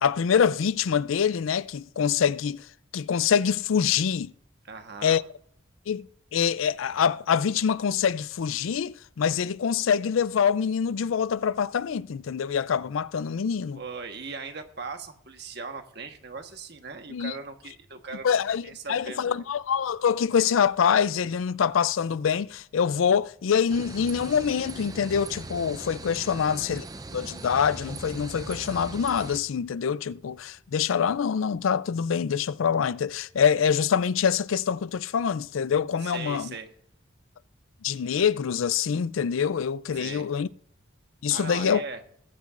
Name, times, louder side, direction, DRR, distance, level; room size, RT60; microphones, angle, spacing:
voice 1, 0.0-2.6 2.9-4.3 5.0-5.2 5.9-13.8 17.1-17.3 18.2-18.6 18.9-26.8 27.1-36.5 37.8-40.5 41.2-41.8, left 7 dB, 80° left, 0.4 m, -25 dB
voice 2, 4.6-5.2 13.7-18.4 18.6-19.4 26.3-26.6 36.0-36.7 39.9-40.3 41.3-42.0, right 4 dB, 55° right, 1.3 m, -39 dB
sound 1, 23.7-29.4, right 2 dB, 20° right, 0.5 m, -40 dB
21.0 x 8.4 x 2.5 m
head